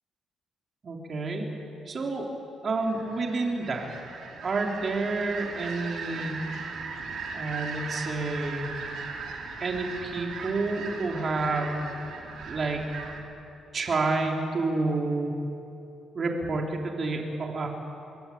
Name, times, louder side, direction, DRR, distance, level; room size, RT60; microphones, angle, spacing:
voice 1, 0.8-2.3 2.6-3.9 4.4-6.5 7.3-8.7 9.6-11.9 12.4-12.8 13.7-15.3 16.1-17.7, right 3 dB, 45° right, 0 dB, 4.0 m, -29 dB
sound 1, 2.8-13.2, right 4 dB, 70° right, 4.3 m, -38 dB
26.0 x 23.0 x 8.8 m, 2.7 s
cardioid pair, 90°, 0 cm